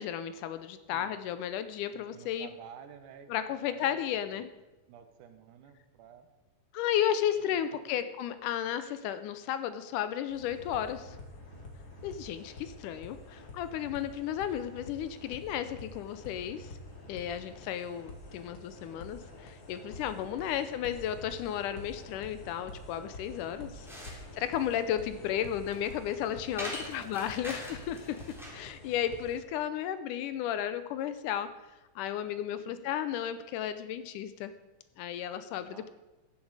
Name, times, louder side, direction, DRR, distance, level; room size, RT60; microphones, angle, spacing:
voice 1, 0.0-2.5 3.3-4.5 6.7-11.2 12.0-16.7 17.1-28.2 28.5-31.5 32.0-34.5 35.0-35.9, left 10 dB, 80° left, 12 dB, 2.0 m, -34 dB
voice 2, 1.9-4.5 4.9-6.3 7.5-7.6 7.9-8.1 20.4-20.6 23.7-24.2 26.8-27.4 32.6-33.0 35.6-35.9, right 8 dB, 75° right, 9 dB, 2.3 m, -52 dB
sound 1, 10.3-29.4, left 2 dB, 40° left, 2.4 m, -48 dB
sound 2, 23.5-28.7, equal, ahead, 2.3 m, -44 dB
14.5 x 10.5 x 4.8 m, 1.1 s
omnidirectional pair, 3.9 m